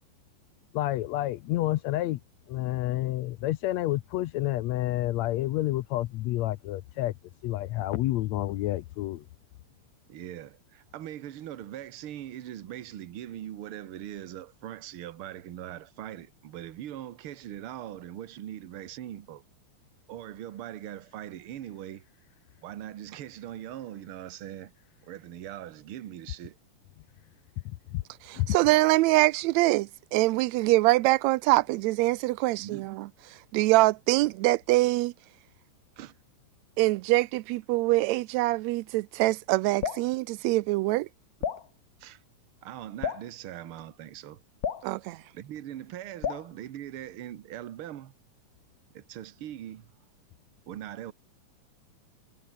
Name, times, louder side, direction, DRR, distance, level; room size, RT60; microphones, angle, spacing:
voice 1, 0.7-2.2 2.5-7.1 7.4-9.2 27.9-28.0 28.4-28.5, left 15 dB, 75° left, 1.7 m, -29 dB
voice 2, 10.1-10.5 10.9-19.4 20.1-22.0 22.6-24.7 25.1-26.5 32.6-32.8 36.0-36.1 42.0-42.2 42.6-44.4 45.3-48.1 48.9-49.8 50.7-51.1, right 12 dB, 55° right, 1.7 m, -41 dB
voice 3, 28.2-33.1 33.5-35.1 36.8-41.1 44.8-45.2, right 19 dB, 80° right, 1.7 m, -24 dB
Drip, 39.8-40.1 41.4-41.7 43.0-43.3 44.6-44.9 46.2-46.5, left 7 dB, 50° left, 1.1 m, -31 dB
omnidirectional pair, 3.6 m